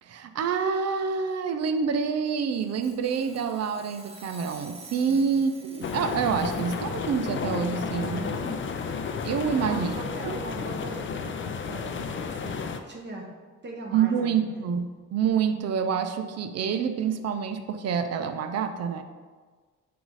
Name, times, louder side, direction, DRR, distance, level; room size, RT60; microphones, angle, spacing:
voice 1, 0.0-8.2 9.2-9.9 10.2-10.4 13.9-19.0, right 6 dB, 55° right, 8 dB, 0.6 m, -27 dB
Sawing, 2.5-9.7, right 2 dB, 20° right, 0.9 m, -51 dB
sound 1, 5.8-12.8, left 5 dB, 40° left, 0.5 m, -32 dB
voice 2, 8.0-8.7 9.5-13.3 13.6-14.6, right 2 dB, 35° right, 0 dB, 1.3 m, -40 dB
7.9 x 2.6 x 4.8 m, 1.5 s
cardioid pair, 90°, 30 cm